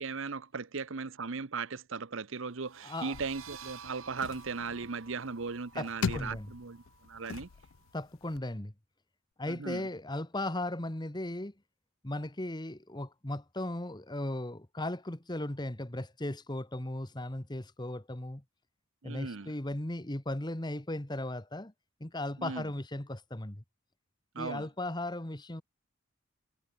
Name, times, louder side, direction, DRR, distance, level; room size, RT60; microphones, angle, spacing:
voice 1, 0.0-7.5 9.5-9.9 19.0-19.5 22.4-22.6 24.3-24.7, right 4 dB, 65° right, 0.9 m, -38 dB
sound 1, 2.5-8.0, right 7 dB, 80° right, 2.6 m, -52 dB
voice 2, 2.8-3.2 5.7-6.5 7.9-8.7 9.4-11.5 12.0-18.4 19.0-21.7 22.0-23.6 24.4-25.6, left 1 dB, 20° left, 1.4 m, -37 dB
sound 2, 3.1-8.4, left 5 dB, 70° left, 0.5 m, -41 dB
head